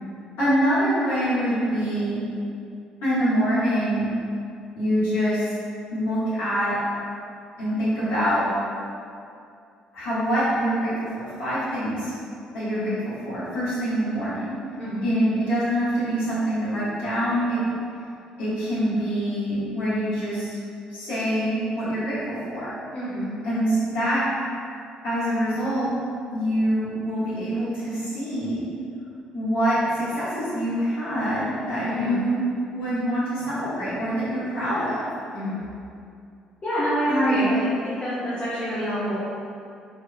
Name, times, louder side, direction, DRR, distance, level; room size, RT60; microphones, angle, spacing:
voice 1, 0.4-2.2 3.0-4.1 4.7-5.4 5.9-6.8 7.6-8.4 9.9-12.1 12.5-13.0 13.2-14.5 15.0-17.7 18.4-20.5 20.9-22.7 23.4-24.2 25.0-25.9 26.3-28.6 29.3-32.4 32.7-35.0 37.1-37.5, equal, 60° left, -12 dB, 1.5 m, -25 dB
voice 2, 22.9-23.2 31.8-32.2 35.3-35.6 36.6-39.2, equal, 35° left, -12 dB, 0.9 m, -27 dB
3.9 x 3.0 x 2.2 m, 2.4 s
figure-of-eight pair, 45°, 4 cm